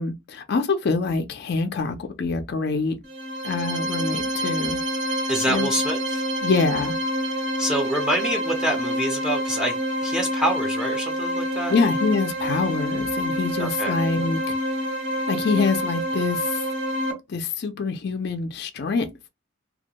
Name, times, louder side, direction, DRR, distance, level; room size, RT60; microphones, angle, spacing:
voice 1, 0.0-3.0 3.4-4.8 5.5-5.7 6.4-7.0 11.7-14.6 15.3-16.6 17.3-19.1, left 4 dB, 55° left, 0.4 m, -25 dB
sound 1, 3.0-17.1, equal, 55° right, 1.2 m, -27 dB
voice 2, 5.3-6.2 7.6-9.8 10.0-11.7 13.6-13.9, right 1 dB, 5° right, 0.5 m, -26 dB
2.3 x 2.1 x 2.8 m
head